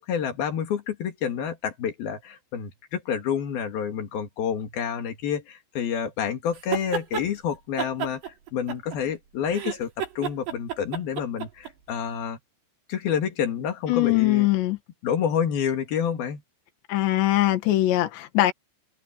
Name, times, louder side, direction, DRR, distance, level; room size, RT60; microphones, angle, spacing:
voice 1, 0.0-12.4 12.9-14.5 15.0-16.4, left 8 dB, 60° left, 3.9 m, -28 dB
sound 1, 6.5-7.3 7.8-9.2 9.5-11.7, right 8 dB, 70° right, 5.6 m, -31 dB
voice 2, 13.9-14.8 16.9-18.5, left 15 dB, 75° left, 3.9 m, -21 dB
open air
omnidirectional pair, 5.2 m